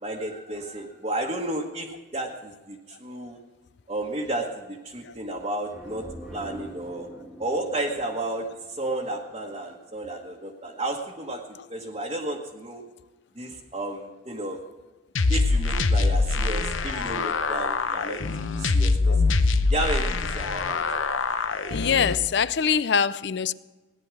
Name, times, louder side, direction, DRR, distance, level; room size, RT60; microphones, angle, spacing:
voice 1, 0.0-3.4 3.9-7.1 7.4-11.4 11.7-12.8 13.3-14.6 15.3-18.2 18.6-19.2 19.7-21.9, right 1 dB, 30° right, 1.3 m, -32 dB
sound 1, 5.7-9.4, equal, ahead, 1.8 m, -44 dB
sound 2, 15.2-22.2, left 3 dB, 80° left, 0.8 m, -24 dB
voice 2, 21.7-23.5, left 7 dB, 60° left, 0.5 m, -23 dB
18.0 x 10.5 x 6.2 m
head